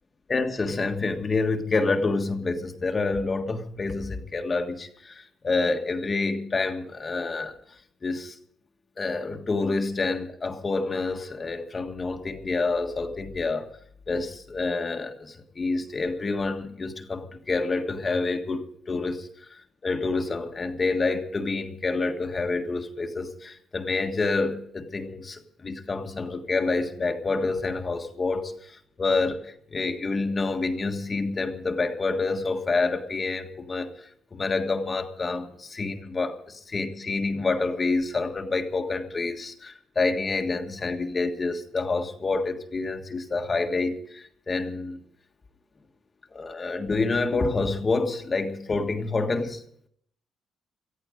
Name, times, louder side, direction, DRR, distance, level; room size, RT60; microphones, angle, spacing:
voice 1, 0.3-7.5 8.0-8.3 9.0-13.7 14.1-45.0 46.3-49.6, left 3 dB, 35° left, 5 dB, 1.5 m, -28 dB
18.5 x 13.5 x 5.2 m, 0.66 s
cardioid pair, 90°, 0 cm